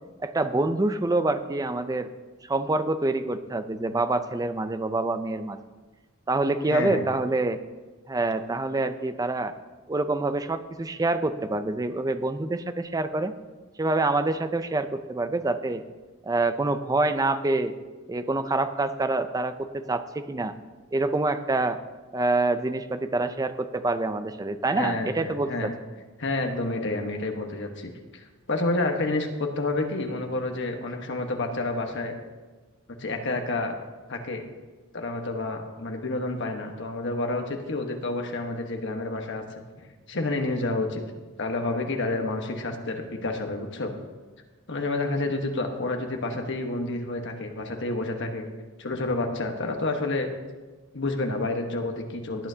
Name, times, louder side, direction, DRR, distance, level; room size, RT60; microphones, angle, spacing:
voice 1, 0.2-2.1 2.4-5.6 6.3-7.6 8.1-9.5 9.9-13.3 13.8-15.8 16.2-17.7 18.1-20.5 20.9-21.8 22.1-25.7, right 2 dB, 15° right, 10 dB, 0.4 m, -26 dB
voice 2, 6.6-7.0 24.7-25.7 26.2-32.1 33.0-33.7 34.1-34.4 34.9-39.4 39.8-41.0 41.4-43.9 44.7-48.5 48.8-50.3 50.9-52.5, left 2 dB, 60° left, 4 dB, 1.3 m, -29 dB
17.5 x 9.0 x 2.8 m, 1.3 s
head